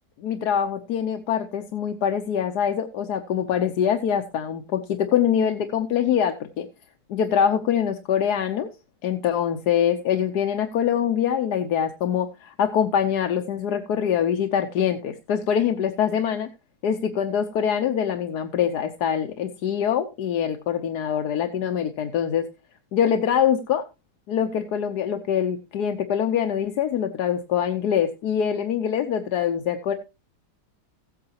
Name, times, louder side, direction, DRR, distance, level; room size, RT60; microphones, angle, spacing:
voice 1, 0.2-6.7 7.1-8.7 9.0-16.5 16.8-22.5 22.9-23.8 24.3-29.9, left 8 dB, 80° left, 6 dB, 1.4 m, -24 dB
16.0 x 8.7 x 2.9 m, 0.27 s
omnidirectional pair, 1.7 m